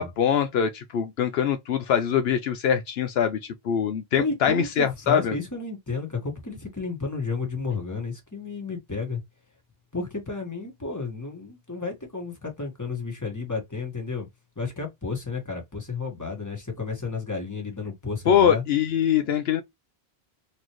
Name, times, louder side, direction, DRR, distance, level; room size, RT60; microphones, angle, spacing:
voice 1, 0.0-3.4 3.6-5.3 18.3-19.6, left 8 dB, 75° left, 0.8 m, -23 dB
voice 2, 4.2-9.2 9.9-14.3 14.6-18.6, left 4 dB, 15° left, 1.5 m, -32 dB
4.1 x 3.1 x 3.0 m
omnidirectional pair, 1.1 m